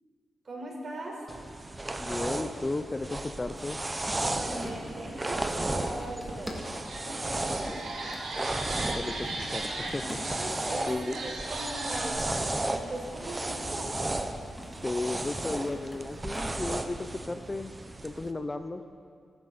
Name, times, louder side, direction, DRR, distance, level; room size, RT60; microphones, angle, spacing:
voice 1, 0.4-1.3 4.1-6.6 7.0-7.9 10.4-10.9 11.2-14.1, right 1 dB, 45° right, -1 dB, 4.4 m, -40 dB
sound 1, 1.3-18.3, right 2 dB, 20° right, 0.9 m, -34 dB
voice 2, 2.0-3.8 9.0-10.2 10.9-11.2 14.8-17.7 18.0-18.8, left 2 dB, 25° left, 8 dB, 0.6 m, -34 dB
sound 2, 3.5-17.0, equal, 5° left, 2.2 m, -46 dB
sound 3, 6.3-6.4 6.7-12.1, right 2 dB, 80° right, 2.7 m, -38 dB
22.0 x 12.5 x 4.2 m, 2.2 s
cardioid pair, 90°, 0 cm